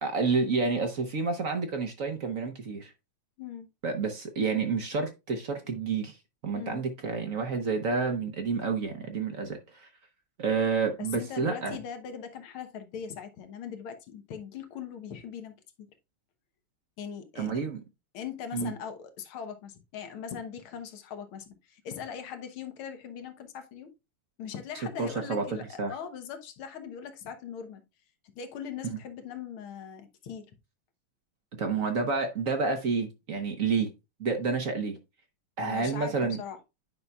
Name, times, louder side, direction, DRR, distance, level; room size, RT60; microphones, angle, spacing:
voice 1, 0.0-2.9 3.8-6.2 6.4-9.9 10.4-11.8 17.4-17.8 18.5-18.7 25.0-25.4 25.8-25.9 31.6-33.9 34.2-35.0 35.6-36.4, right 4 dB, 50° right, 1.0 m, -29 dB
voice 2, 3.4-3.7 6.5-6.9 11.0-15.9 17.0-17.7 18.1-23.9 24.4-27.8 28.4-30.6 35.6-36.6, left 7 dB, 75° left, 1.9 m, -40 dB
9.5 x 5.6 x 2.3 m
omnidirectional pair, 2.4 m